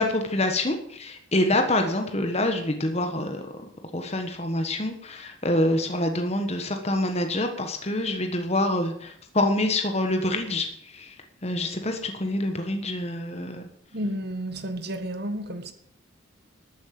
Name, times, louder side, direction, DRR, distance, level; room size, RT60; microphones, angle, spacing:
voice 1, 0.0-3.4 3.9-11.1 11.4-13.7, left 1 dB, 30° left, 1.4 m, -26 dB
voice 2, 13.9-15.7, right 1 dB, 50° right, 1.6 m, -31 dB
13.0 x 9.0 x 7.6 m
head